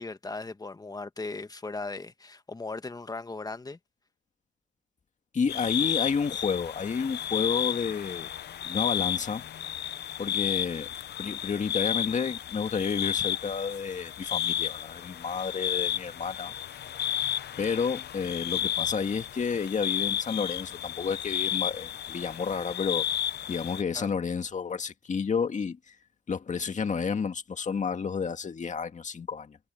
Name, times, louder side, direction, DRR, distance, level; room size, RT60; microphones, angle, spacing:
voice 1, 0.0-3.8 23.9-24.1, left 3 dB, 20° left, 1.5 m, -38 dB
voice 2, 5.3-8.3 8.6-9.5 10.2-10.9 11.2-16.5 17.6-23.1 23.5-26.0 26.3-29.6, left 6 dB, 40° left, 2.0 m, -30 dB
sound 1, 5.5-23.8, left 10 dB, 55° left, 0.8 m, -32 dB
cardioid pair, 90°, 20 cm